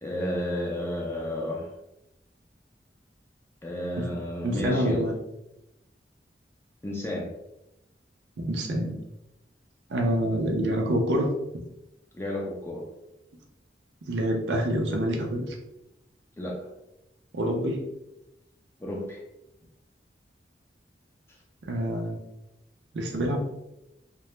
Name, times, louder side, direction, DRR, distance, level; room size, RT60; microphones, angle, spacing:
voice 1, 0.0-1.7 3.6-5.1 6.8-7.3 12.1-12.9 16.4-16.7 18.8-19.2, left 1 dB, 15° left, -2 dB, 0.4 m, -32 dB
voice 2, 4.4-5.2 8.4-9.0 9.9-11.3 14.1-15.5 17.3-17.8 21.6-22.2 22.9-23.5, equal, 85° right, 2 dB, 0.5 m, -26 dB
2.2 x 2.0 x 2.9 m, 0.89 s
head